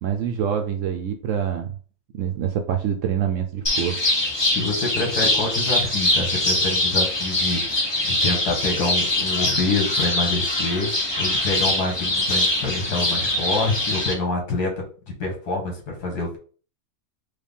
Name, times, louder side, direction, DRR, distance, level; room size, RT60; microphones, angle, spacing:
voice 1, 0.0-1.7 2.1-4.0, right 8 dB, 70° right, 5 dB, 0.8 m, -25 dB
sound 1, 3.7-14.1, left 1 dB, 25° left, 0.6 m, -23 dB
voice 2, 4.6-10.9 11.2-14.8 15.2-16.4, left 3 dB, 80° left, 1 dB, 1.9 m, -26 dB
4.9 x 2.2 x 3.5 m, 0.40 s
omnidirectional pair, 1.7 m